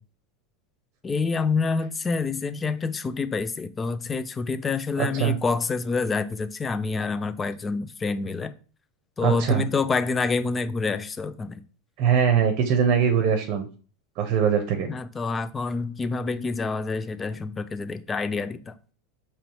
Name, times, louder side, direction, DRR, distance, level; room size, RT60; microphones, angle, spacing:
voice 1, 1.0-8.5 9.2-11.6 14.9-18.7, left 4 dB, 15° left, 0.3 m, -27 dB
voice 2, 5.0-5.4 9.2-9.6 12.0-13.7 14.2-14.9, right 7 dB, 50° right, 0.7 m, -22 dB
4.7 x 3.0 x 2.9 m
supercardioid pair, 140°, 0 cm